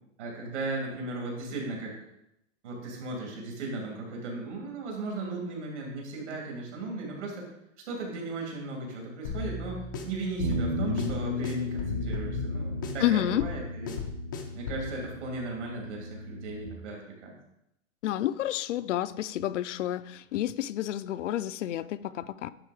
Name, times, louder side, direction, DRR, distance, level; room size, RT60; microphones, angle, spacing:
voice 1, 0.2-1.9 2.6-7.5 7.8-14.0 14.5-17.3, right 2 dB, 70° right, -1 dB, 3.0 m, -36 dB
sound 1, 9.2-14.9, left 5 dB, 20° left, 0.3 m, -34 dB
Bass guitar, 10.4-16.7, right 1 dB, 40° right, 0.8 m, -36 dB
voice 2, 13.0-13.5 18.0-22.5, left 12 dB, 75° left, 14 dB, 0.5 m, -30 dB
10.0 x 3.6 x 5.0 m, 0.83 s
hypercardioid pair, 160°, 37 cm